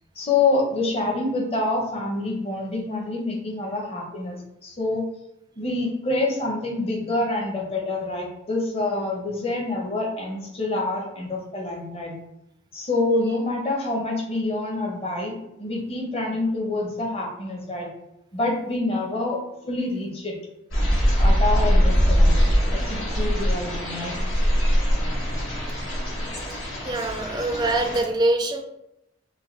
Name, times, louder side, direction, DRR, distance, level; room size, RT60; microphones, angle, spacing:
voice 1, 0.2-4.4 4.6-5.0 5.6-12.1 12.7-17.9 18.3-19.4 19.7-20.4 21.2-22.4 22.7-24.2, left 2 dB, 30° left, 0 dB, 0.8 m, -26 dB
sound 1, 20.7-28.0, equal, 75° left, 1.3 m, -22 dB
voice 2, 26.8-28.6, right 2 dB, 20° right, 5 dB, 0.4 m, -24 dB
5.3 x 2.2 x 3.2 m, 0.87 s
head